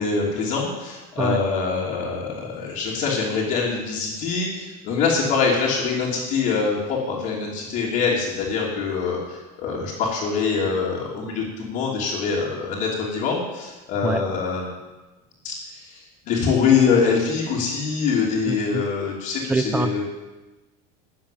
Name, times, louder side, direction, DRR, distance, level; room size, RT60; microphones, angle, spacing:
voice 1, 0.0-14.7 15.4-20.0, left 5 dB, 45° left, -7 dB, 3.0 m, -24 dB
voice 2, 18.5-18.9 19.5-20.0, right 3 dB, 5° right, 10 dB, 0.7 m, -25 dB
13.5 x 7.3 x 9.1 m, 1.1 s
cardioid pair, 175°, 20 cm